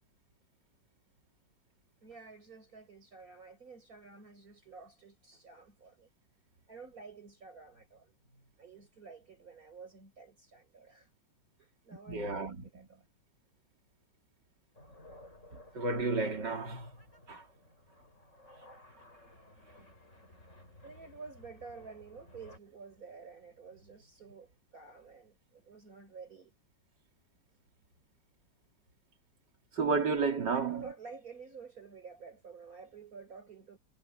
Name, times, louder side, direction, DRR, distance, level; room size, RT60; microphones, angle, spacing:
voice 1, 2.0-6.1 6.7-11.1 11.6-13.1 20.8-26.5 30.4-33.8, right 4 dB, 50° right, 6.3 m, -51 dB
voice 2, 12.1-12.9 15.7-16.9 17.3-17.4 29.8-30.8, right 4 dB, 70° right, 3.7 m, -32 dB
sound 1, 14.8-22.6, left 1 dB, 40° left, 8.4 m, -57 dB
omnidirectional pair, 2.0 m